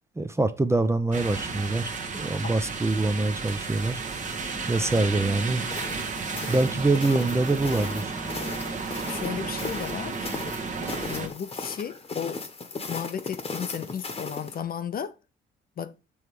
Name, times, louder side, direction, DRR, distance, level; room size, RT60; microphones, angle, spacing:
voice 1, 0.2-4.0 4.7-5.6 6.5-8.1, right 2 dB, 15° right, 0.5 m, -25 dB
sound 1, 1.1-11.3, right 4 dB, 40° right, 1.1 m, -33 dB
sound 2, 5.7-14.6, left 4 dB, 30° left, 1.1 m, -37 dB
voice 2, 9.1-10.3 11.1-12.4 12.9-15.1 15.8-15.9, left 8 dB, 50° left, 0.6 m, -34 dB
7.0 x 3.2 x 4.7 m
cardioid pair, 90°, 20 cm